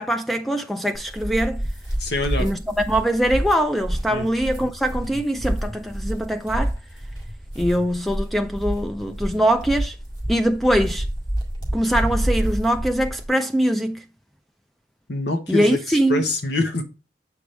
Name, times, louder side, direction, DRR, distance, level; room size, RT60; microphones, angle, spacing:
voice 1, 0.0-1.6 2.4-6.7 7.6-10.0 10.3-11.0 11.7-14.0 15.5-16.2, right 1 dB, ahead, 0.3 m, -22 dB
sound 1, 0.9-13.3, right 1 dB, 25° left, 1.9 m, -28 dB
voice 2, 2.0-2.5 4.1-4.3 15.1-16.8, left 2 dB, 75° left, 1.3 m, -25 dB
7.1 x 4.8 x 3.3 m
head